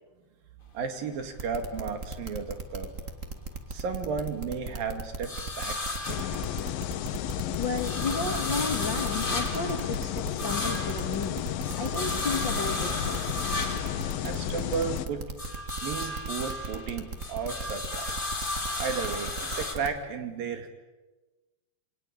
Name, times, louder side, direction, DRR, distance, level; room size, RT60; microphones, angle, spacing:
sound 1, 0.7-3.0 3.4-7.1 7.4-14.9 15.2-19.8, left 2 dB, 20° left, 1.8 m, -35 dB
voice 1, 0.7-2.9 3.7-5.8 6.1-6.4 14.2-15.2 15.8-18.3 18.8-20.7, right 5 dB, 70° right, 6 dB, 3.9 m, -34 dB
sound 2, 1.4-19.9, right 3 dB, 30° right, 1.5 m, -37 dB
sound 3, 6.1-15.1, left 11 dB, 75° left, 2.7 m, -33 dB
voice 2, 7.6-13.3, left 4 dB, 40° left, 3 dB, 2.1 m, -33 dB
27.5 x 23.5 x 8.7 m, 1.2 s
omnidirectional pair, 4.3 m